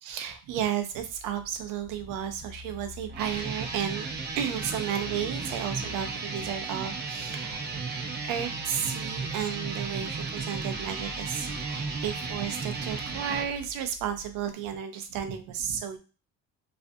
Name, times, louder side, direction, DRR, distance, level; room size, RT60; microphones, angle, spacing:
voice 1, 0.0-7.8 8.2-16.0, right 9 dB, 85° right, 7 dB, 0.6 m, -33 dB
sound 1, 1.1-14.5, left 1 dB, 35° left, 0.7 m, -48 dB
sound 2, 3.1-13.5, right 4 dB, 30° right, 0.5 m, -34 dB
2.5 x 2.1 x 2.6 m, 0.33 s
cardioid pair, 105°, 32 cm